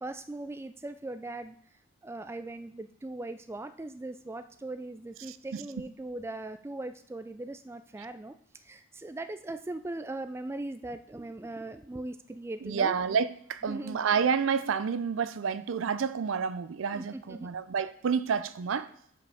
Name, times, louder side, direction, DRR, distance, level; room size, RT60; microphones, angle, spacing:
voice 1, 0.0-1.6 2.0-8.3 8.6-12.9 13.7-14.0 16.9-17.5, right 2 dB, 15° right, 0.3 m, -39 dB
voice 2, 5.3-5.6 12.6-18.9, right 6 dB, 90° right, 0.4 m, -29 dB
5.3 x 5.3 x 5.6 m
head